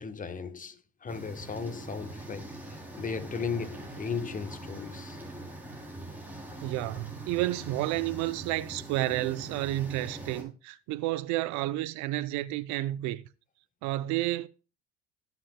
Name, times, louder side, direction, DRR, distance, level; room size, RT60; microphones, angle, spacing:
voice 1, 0.0-5.2, left 5 dB, 25° left, 1.1 m, -36 dB
sound 1, 1.1-10.4, right 1 dB, 5° right, 3.2 m, -43 dB
voice 2, 6.6-13.2 13.8-14.5, right 16 dB, 70° right, 0.6 m, -31 dB
17.5 x 6.2 x 2.2 m
supercardioid pair, 90°, 30 cm